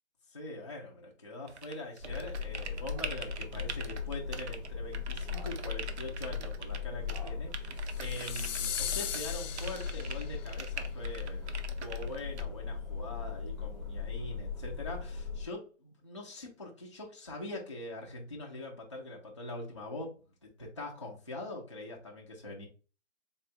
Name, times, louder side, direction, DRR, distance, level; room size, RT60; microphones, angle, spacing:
voice 1, 0.3-11.5 11.8-22.7, left 2 dB, 25° left, -2 dB, 0.4 m, -43 dB
sound 1, 1.5-4.7 4.9-6.8 7.1-9.3 9.6-12.4, right 6 dB, 60° right, 0.6 m, -43 dB
sound 2, 2.0-15.5, left 5 dB, 10° right, 0.7 m, -38 dB
sound 3, 7.9-10.4, left 9 dB, 85° left, 0.5 m, -38 dB
3.6 x 2.2 x 3.8 m, 0.35 s
hypercardioid pair, 160°, 37 cm